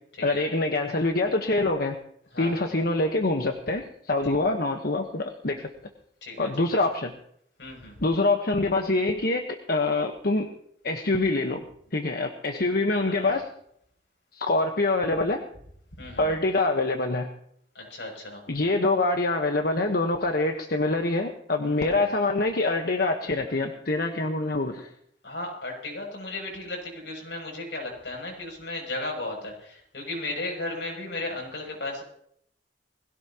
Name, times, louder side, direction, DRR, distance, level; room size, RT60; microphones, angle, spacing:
voice 1, 0.2-2.0 2.4-5.7 6.4-7.1 8.0-10.5 10.8-11.6 11.9-13.4 14.3-15.4 16.2-17.3 18.5-24.9, left 2 dB, 60° left, 4 dB, 1.2 m, -25 dB
voice 2, 2.3-2.7 6.2-6.5 7.6-8.0 12.9-13.3 16.0-16.3 17.7-18.4 21.6-22.0 25.2-32.0, left 2 dB, 85° left, 1 dB, 7.5 m, -35 dB
21.0 x 17.0 x 3.0 m, 0.68 s
head